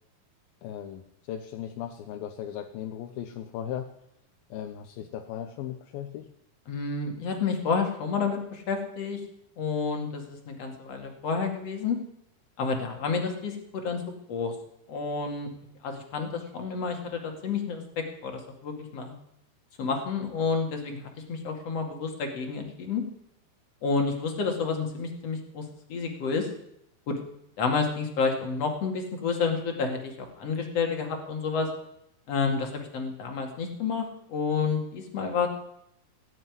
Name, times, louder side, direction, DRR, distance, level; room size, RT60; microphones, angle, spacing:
voice 1, 0.6-3.9 4.5-6.3, left 10 dB, 75° left, 5 dB, 2.6 m, -37 dB
voice 2, 6.7-9.2 9.6-12.0 12.6-13.6 13.8-14.0 14.3-14.5 14.9-15.5 15.8-17.8 18.2-19.1 19.8-23.0 23.8-25.6 25.9-26.5 27.1-27.2 27.6-31.7 32.3-35.5, left 5 dB, 45° left, 3 dB, 2.9 m, -29 dB
18.0 x 8.0 x 9.5 m, 0.76 s
omnidirectional pair, 4.7 m